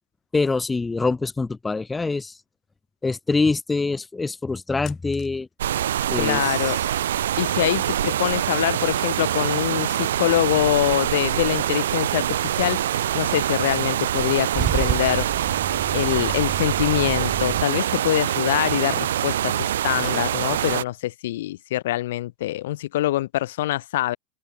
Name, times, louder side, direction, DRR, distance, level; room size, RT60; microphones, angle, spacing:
voice 1, 0.3-2.4 3.0-5.5 6.1-6.5, left 3 dB, 10° left, 1.1 m, -24 dB
Telephone, 4.8-5.4 6.9-8.1 8.6-10.2 10.6-15.0 15.3-16.9 19.0-19.1 19.7-20.4, left 11 dB, 30° left, 4.9 m, -49 dB
sound 1, 5.6-20.8, right 11 dB, 90° right, 0.8 m, -24 dB
voice 2, 6.2-6.8 7.4-12.3 12.6-12.8 13.1-15.3 15.9-24.2, left 15 dB, 70° left, 1.3 m, -24 dB
Car / Engine starting / Idling, 14.2-17.6, right 13 dB, 35° right, 0.5 m, -30 dB
open air
supercardioid pair, 145°, 0 cm